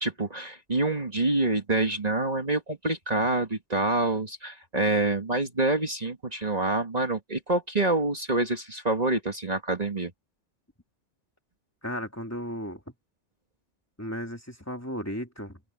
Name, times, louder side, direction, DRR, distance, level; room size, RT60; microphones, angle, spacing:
voice 1, 0.0-10.1, right 2 dB, 35° right, 2.0 m, -27 dB
voice 2, 11.8-12.9 14.0-15.6, equal, 15° left, 2.7 m, -35 dB
open air
omnidirectional pair, 1.2 m